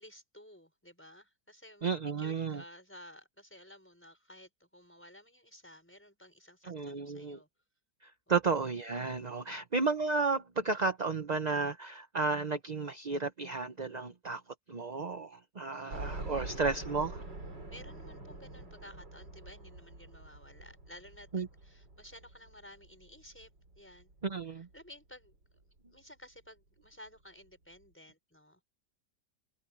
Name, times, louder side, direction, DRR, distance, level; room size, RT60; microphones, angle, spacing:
voice 1, 0.0-1.9 2.2-7.5 8.3-8.4 15.8-16.7 17.7-23.5 23.7-24.1 24.5-25.4 25.9-28.6, equal, 5° left, 5.9 m, -54 dB
voice 2, 1.8-2.6 6.7-7.4 8.0-14.4 14.7-17.2 21.3-21.5 24.2-24.7, right 4 dB, 35° right, 0.8 m, -33 dB
sound 1, 15.9-24.8 25.3-25.4 25.8-25.9 27.1-27.2 27.4-27.5, right 2 dB, 80° right, 6.4 m, -45 dB
omnidirectional pair, 1.9 m